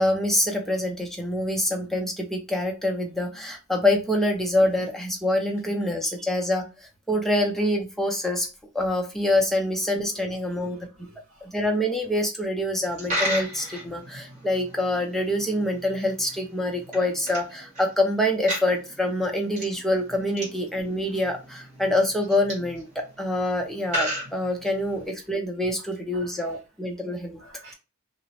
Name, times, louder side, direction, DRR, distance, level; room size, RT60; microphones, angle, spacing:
voice 1, 0.0-8.5 8.7-10.8 11.4-27.4, left 1 dB, ahead, 2 dB, 0.4 m, -26 dB
voice 2, 10.3-11.4 26.1-26.3 27.4-27.7, equal, 70° right, -1 dB, 1.4 m, -49 dB
Coin (dropping), 12.8-25.1, equal, 35° right, 1.3 m, -36 dB
2.8 x 2.0 x 2.8 m, 0.29 s
head